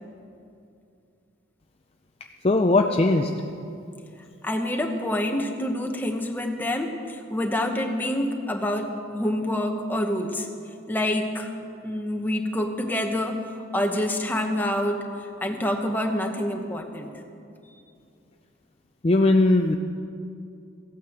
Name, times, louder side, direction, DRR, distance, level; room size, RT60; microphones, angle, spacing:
voice 1, 2.4-3.3 19.0-19.8, left 2 dB, 30° left, 4 dB, 0.5 m, -19 dB
voice 2, 4.4-10.5 10.9-11.5 11.8-17.1, left 1 dB, 10° left, 3 dB, 1.0 m, -27 dB
15.0 x 9.1 x 7.8 m, 2.5 s
head